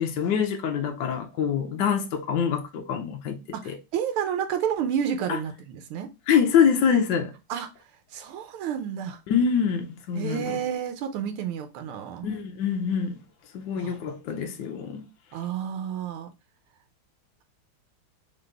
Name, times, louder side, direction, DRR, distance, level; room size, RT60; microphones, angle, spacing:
voice 1, 0.0-3.4 3.7-3.8 5.3-5.4 6.3-7.3 9.3-10.6 12.2-13.2 13.5-15.0, left 7 dB, 70° left, 1.2 m, -25 dB
voice 2, 3.5-6.1 7.5-7.7 8.1-9.2 10.2-12.3 13.8-14.0 14.3-14.5 15.3-16.3, right 8 dB, 85° right, 1.5 m, -30 dB
4.0 x 3.6 x 3.3 m
omnidirectional pair, 2.3 m